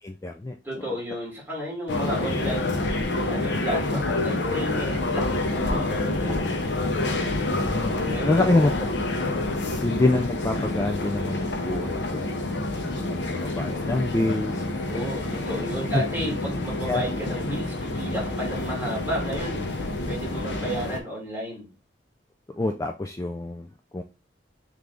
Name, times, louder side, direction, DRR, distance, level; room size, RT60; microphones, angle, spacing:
voice 1, 0.0-0.6 7.5-8.0 8.2-9.2 9.8-12.5 12.8-14.6 15.9-16.0 16.9-17.0 20.2-20.3 22.5-24.0, left 2 dB, 15° left, 4 dB, 0.3 m, -26 dB
voice 2, 0.6-6.6 8.0-8.5 13.4-13.5 14.9-21.7, right 1 dB, 10° right, -5 dB, 1.9 m, -33 dB
sound 1, 1.9-21.0, left 2 dB, 75° left, 0.8 m, -28 dB
3.4 x 3.3 x 3.8 m, 0.30 s
head